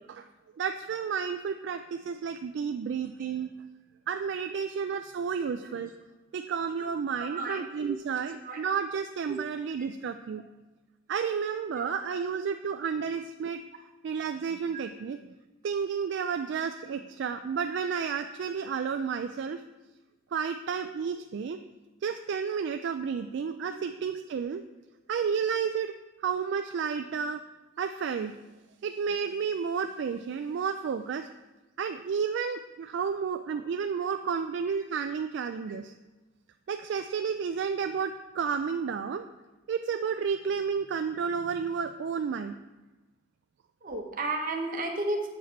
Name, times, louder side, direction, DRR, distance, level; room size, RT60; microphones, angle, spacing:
voice 1, 0.6-3.5 4.1-5.9 6.3-10.4 11.1-13.6 14.0-15.2 15.6-19.6 20.3-21.6 22.0-24.6 25.1-25.9 26.2-27.4 27.8-28.4 28.8-31.3 31.8-35.9 36.7-39.2 39.7-42.6, right 6 dB, 60° right, 8 dB, 0.3 m, -31 dB
voice 2, 7.2-7.9 8.5-8.6 11.8-11.9 14.7-14.8 43.8-45.3, right 2 dB, 45° right, 2 dB, 1.0 m, -33 dB
7.4 x 4.8 x 4.5 m, 1.1 s
head